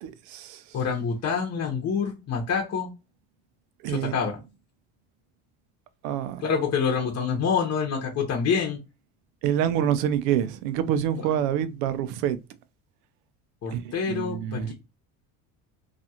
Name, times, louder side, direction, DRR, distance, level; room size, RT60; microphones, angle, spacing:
voice 1, 0.0-0.6 3.8-4.2 6.0-6.4 9.4-12.4 13.7-14.7, right 10 dB, 80° right, 0.6 m, -27 dB
voice 2, 0.7-2.9 3.9-4.3 6.4-8.8 13.6-14.7, left 6 dB, 40° left, 0.9 m, -26 dB
2.5 x 2.4 x 2.8 m
supercardioid pair, 95°, 39 cm